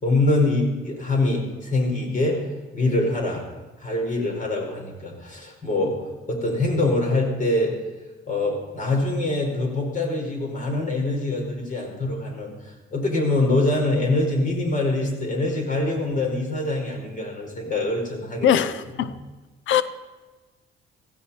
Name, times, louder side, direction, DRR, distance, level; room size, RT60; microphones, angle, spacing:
voice 1, 0.0-2.4 2.7-3.4 3.8-5.9 6.3-7.7 8.3-18.5 19.0-19.1, left 2 dB, 40° left, 5.0 m, -24 dB
voice 2, 18.4-19.1 19.7-19.8, left 10 dB, 75° left, 0.7 m, -20 dB
16.5 x 14.5 x 4.3 m
cardioid pair, 90°, 20 cm